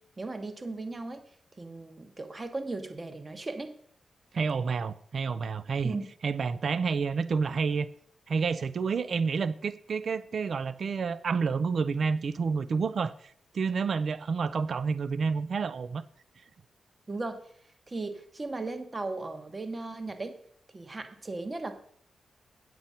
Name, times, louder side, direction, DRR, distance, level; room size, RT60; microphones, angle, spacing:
voice 1, 0.2-1.2 1.6-3.7 5.8-6.1 17.1-17.4 17.9-20.4 20.7-21.8, right 3 dB, 30° right, 1.2 m, -37 dB
voice 2, 4.3-6.0 6.2-7.9 8.3-16.0, right 5 dB, 60° right, 0.4 m, -29 dB
9.0 x 7.7 x 5.6 m
cardioid pair, 100°, 0 cm